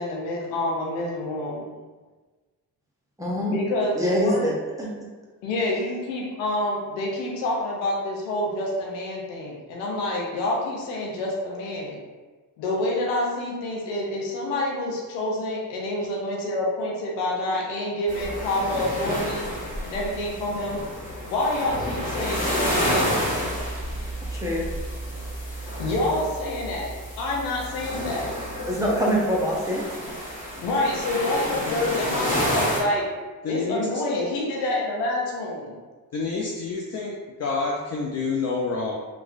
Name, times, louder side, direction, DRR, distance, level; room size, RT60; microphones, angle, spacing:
voice 1, 0.0-1.7 3.5-4.4 5.4-12.0 12.6-19.5 19.8-20.8 21.3-23.1 25.8-28.3 30.6-33.1 33.5-35.8, left 1 dB, 90° left, -2 dB, 0.6 m, -27 dB
voice 2, 3.2-3.6 3.9-4.9 24.3-24.7 28.6-29.8, equal, 5° right, -4 dB, 0.8 m, -24 dB
sound 1, 18.1-32.8, equal, 15° left, 1.2 m, -30 dB
voice 3, 33.4-33.9 36.1-37.1 37.4-39.0, left 4 dB, 35° left, -2 dB, 0.4 m, -28 dB
2.9 x 2.3 x 2.5 m, 1.3 s
hypercardioid pair, 40°, 45 cm